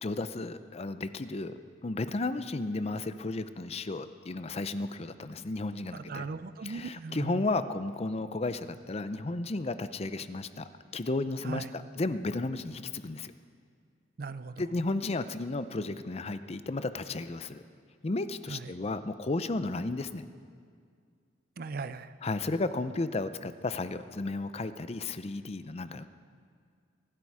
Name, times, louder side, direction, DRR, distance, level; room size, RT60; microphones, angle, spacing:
voice 1, 0.0-6.3 6.6-13.3 14.6-17.6 18.0-20.2 22.2-26.1, left 2 dB, 35° left, 12 dB, 0.5 m, -33 dB
voice 2, 5.9-7.5 11.4-11.7 14.2-14.6 18.5-18.8 21.6-22.1, right 4 dB, 55° right, 13 dB, 0.5 m, -38 dB
24.0 x 11.5 x 4.8 m, 2.2 s
head